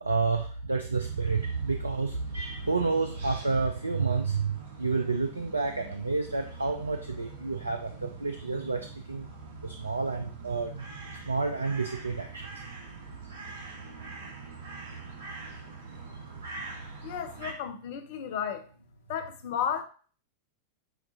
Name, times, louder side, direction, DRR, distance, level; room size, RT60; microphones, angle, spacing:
voice 1, 0.0-9.3 9.6-10.9 11.3-12.5, right 4 dB, 80° right, 5 dB, 0.3 m, -30 dB
sound 1, 1.0-17.5, right 3 dB, 65° right, 0.9 m, -44 dB
voice 2, 17.0-18.7 19.1-19.8, left 8 dB, 50° left, 8 dB, 0.6 m, -33 dB
7.2 x 2.4 x 2.6 m, 0.41 s
figure-of-eight pair, 90°, 0 cm